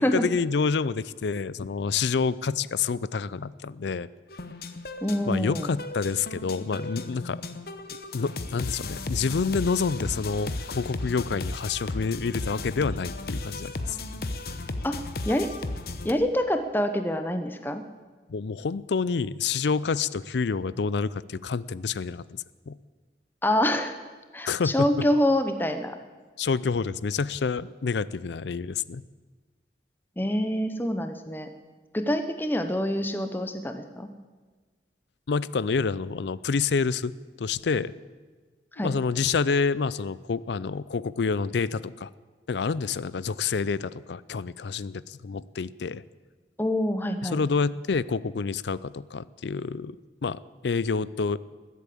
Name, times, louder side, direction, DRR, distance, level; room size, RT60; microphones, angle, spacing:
voice 1, 0.0-4.1 5.2-7.4 8.1-14.0 18.3-22.8 24.5-24.9 26.4-29.0 35.3-37.9 38.8-42.1 42.5-46.0 47.2-50.0 50.2-51.4, left 5 dB, 75° left, 19 dB, 0.5 m, -28 dB
sound 1, 4.3-16.1, left 2 dB, 55° left, 0.9 m, -35 dB
voice 2, 5.0-5.7 14.8-15.0 15.2-15.5 16.0-17.8 23.4-23.9 24.3-26.0 30.2-31.5 31.9-34.1 38.7-38.9 46.6-47.4, left 1 dB, 10° left, 7 dB, 0.8 m, -26 dB
20.0 x 8.5 x 8.4 m, 1.4 s
head